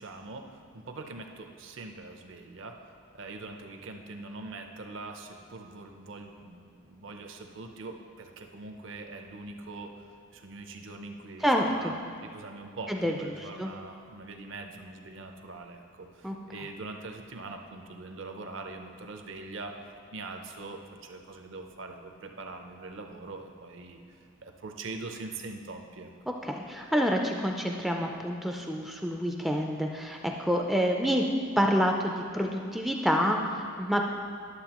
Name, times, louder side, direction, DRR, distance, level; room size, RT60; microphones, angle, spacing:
voice 1, 0.0-10.0 10.3-11.9 12.2-19.8 20.1-26.1, right 3 dB, 60° right, 4 dB, 0.7 m, -43 dB
voice 2, 11.4-11.9 12.9-13.1 13.6-13.7 16.2-16.4 26.4-31.3 31.6-34.0, equal, ahead, 1 dB, 0.3 m, -27 dB
11.5 x 7.4 x 3.0 m, 2.2 s
head